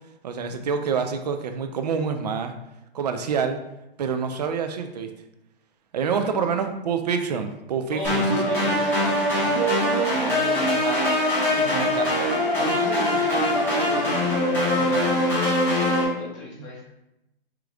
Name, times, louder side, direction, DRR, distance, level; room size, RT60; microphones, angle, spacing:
voice 1, 0.2-2.5 2.9-3.6 4.0-5.1 5.9-8.2 10.8-11.2 11.7-12.3 16.6-16.7, right 6 dB, 45° right, 7 dB, 0.4 m, -27 dB
voice 2, 6.2-6.5 7.9-11.0 11.5-12.0 12.5-15.4 15.8-16.9, left 1 dB, 35° left, -6 dB, 0.9 m, -36 dB
sound 1, 8.0-16.0, left 1 dB, 10° left, 0.9 m, -22 dB
4.9 x 3.0 x 2.4 m, 0.90 s
hypercardioid pair, 160°, 29 cm